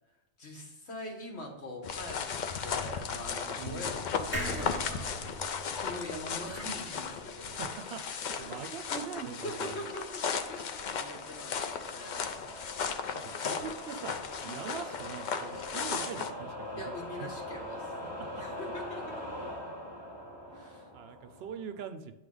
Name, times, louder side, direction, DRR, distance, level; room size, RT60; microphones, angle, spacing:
voice 1, 0.4-7.6 8.4-8.6 9.4-12.3 14.4-14.6 16.8-18.0 18.3-19.4 20.5-20.9, left 1 dB, 75° left, 0 dB, 1.7 m, -43 dB
sound 1, 1.8-16.3, left 6 dB, 55° left, 0.5 m, -36 dB
voice 2, 3.6-3.9 7.5-9.8 13.2-16.8 17.2-17.3 18.0-18.4 20.5-22.1, right 7 dB, 70° right, 8 dB, 0.8 m, -43 dB
sound 2, 4.3-7.8 8.2-8.3 8.5-8.6, right 1 dB, 10° left, 1.7 m, -41 dB
sound 3, 5.9-21.8, left 1 dB, 40° left, 2.6 m, -44 dB
8.6 x 3.2 x 3.8 m, 1.1 s
omnidirectional pair, 1.1 m